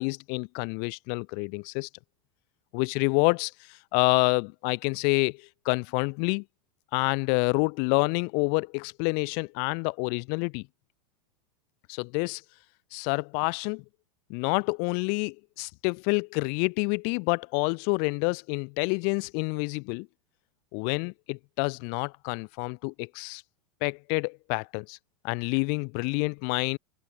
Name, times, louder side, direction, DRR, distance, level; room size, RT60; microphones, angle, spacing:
voice 1, 0.0-1.9 2.7-6.4 6.9-10.7 11.9-12.4 12.9-13.8 14.3-20.1 20.7-23.4 23.8-25.0 25.2-26.8, left 40 dB or more, 55° left, 3.9 m, -28 dB
hypercardioid pair, 100°, 19 cm